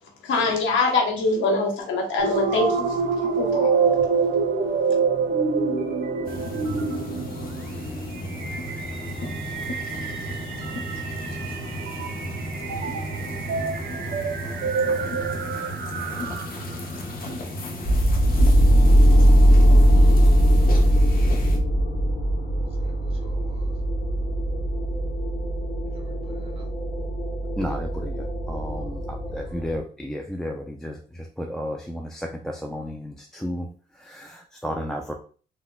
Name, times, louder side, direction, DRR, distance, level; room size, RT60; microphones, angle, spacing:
voice 1, 0.2-3.0 3.3-3.7, left 3 dB, 75° left, 0 dB, 0.9 m, -23 dB
sound 1, 2.2-16.7, right 5 dB, 65° right, 0.6 m, -27 dB
sound 2, 6.2-21.6, left 1 dB, 45° left, 0.7 m, -34 dB
voice 2, 10.5-11.2 11.7-12.5 12.7-13.5 22.8-23.7 25.9-26.7 29.3-29.6, right 2 dB, 30° right, 0 dB, 1.0 m, -53 dB
sound 3, 17.9-29.8, equal, 25° left, 1.0 m, -19 dB
voice 3, 27.6-33.7 33.9-35.1, equal, 5° left, 1 dB, 0.3 m, -33 dB
3.6 x 2.1 x 2.2 m, 0.41 s
cardioid pair, 90°, 20 cm